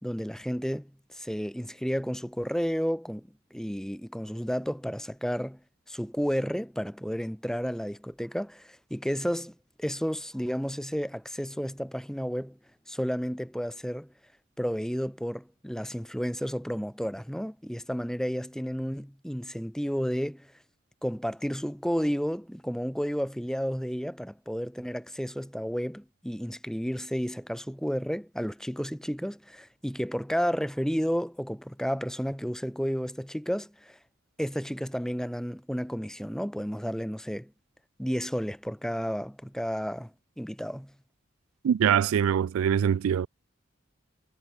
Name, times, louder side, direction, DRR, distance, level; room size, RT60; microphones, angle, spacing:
voice 1, 0.0-5.6 5.9-12.6 12.9-14.1 14.6-20.5 21.0-34.0 34.4-37.5 38.0-40.9, equal, 5° left, 4.8 m, -32 dB
voice 2, 41.6-43.3, right 8 dB, 90° right, 0.3 m, -23 dB
head